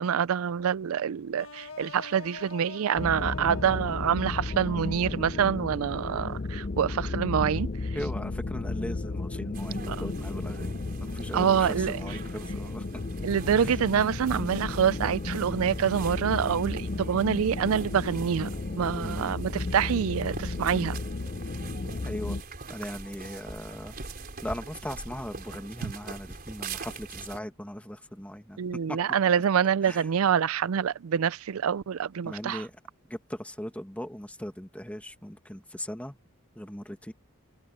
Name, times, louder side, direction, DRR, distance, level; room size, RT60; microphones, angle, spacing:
voice 1, 0.0-7.7 9.9-10.0 11.3-12.0 13.2-18.5 18.8-21.0 25.8-25.9 28.6-32.6, right 8 dB, 75° right, 0.4 m, -26 dB
sound 1, 1.4-6.2, left 4 dB, 65° left, 1.8 m, -45 dB
sound 2, 3.0-22.4, left 3 dB, 40° left, 0.6 m, -34 dB
voice 2, 7.9-10.7 11.0-13.0 13.6-13.8 19.0-19.4 22.0-22.4 22.7-23.9 24.4-29.0 29.8-30.0 32.2-32.7 33.1-36.2 36.6-37.1, equal, 5° left, 2.0 m, -39 dB
sound 3, 9.5-27.4, right 4 dB, 45° right, 4.5 m, -43 dB
head